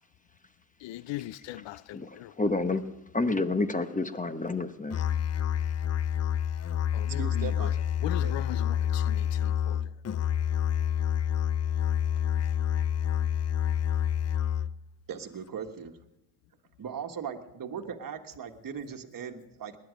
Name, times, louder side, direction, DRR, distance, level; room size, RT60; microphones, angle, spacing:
voice 1, 0.8-2.4 6.9-7.7 8.0-9.9, left 15 dB, 75° left, 0.6 m, -39 dB
voice 2, 2.4-2.8 3.1-5.0, left 3 dB, 15° left, 1.0 m, -28 dB
Musical instrument, 4.9-14.9, left 9 dB, 35° left, 0.5 m, -28 dB
voice 3, 7.1-7.7 8.2-8.3 15.1-16.0 16.8-19.8, right 7 dB, 45° right, 1.5 m, -38 dB
19.5 x 11.0 x 5.1 m
supercardioid pair, 70°, 45 cm